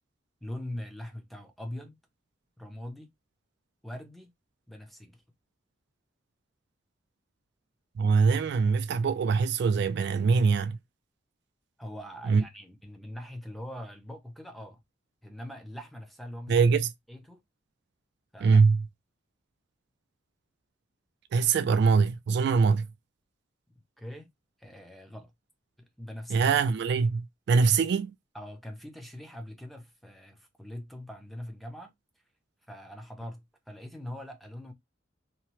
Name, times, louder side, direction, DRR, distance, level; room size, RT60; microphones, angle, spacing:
voice 1, 0.4-2.0 2.6-3.1 3.8-4.3 4.7-5.2 11.8-14.8 15.2-16.7 17.1-17.4 18.3-18.6 24.0-24.3 24.6-25.3 25.8-26.5 28.3-31.9 32.7-34.7, left 1 dB, ahead, 0.5 m, -42 dB
voice 2, 8.0-10.8 12.3-12.4 16.5-16.9 18.4-18.9 21.3-22.9 26.3-28.1, right 5 dB, 60° right, 0.3 m, -23 dB
2.8 x 2.0 x 2.9 m
head